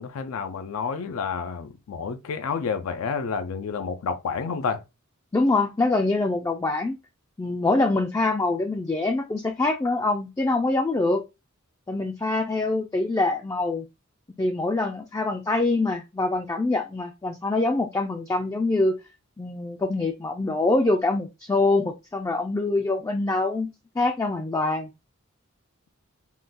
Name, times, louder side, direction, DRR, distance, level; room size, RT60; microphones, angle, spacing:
voice 1, 0.0-4.8, left 5 dB, 85° left, 0.4 m, -29 dB
voice 2, 5.3-7.0 7.4-11.2 11.9-13.9 14.4-19.0 19.4-24.9, left 2 dB, 15° left, 0.3 m, -24 dB
3.7 x 2.2 x 2.5 m
head